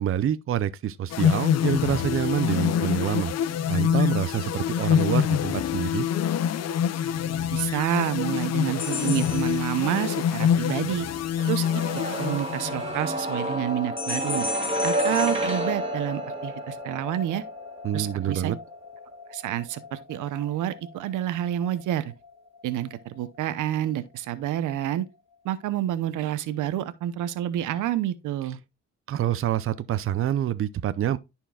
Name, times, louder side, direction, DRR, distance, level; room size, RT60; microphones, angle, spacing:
voice 1, 0.0-3.3 3.7-6.1 17.8-18.6 29.1-31.2, right 11 dB, 45° right, 0.6 m, -27 dB
sound 1, 1.1-13.0, left 9 dB, 60° left, 0.6 m, -25 dB
voice 2, 7.5-11.1 11.4-11.6 12.2-14.5 14.8-17.4 17.9-18.5 19.3-22.1 22.6-25.1 25.4-28.6, right 12 dB, 80° right, 0.8 m, -28 dB
sound 2, 8.8-10.3 14.0-16.5, left 4 dB, 30° left, 2.2 m, -36 dB
sound 3, 11.4-23.2 23.5-23.6, equal, 20° right, 2.2 m, -31 dB
13.5 x 4.5 x 2.3 m
cardioid pair, 90°, 30 cm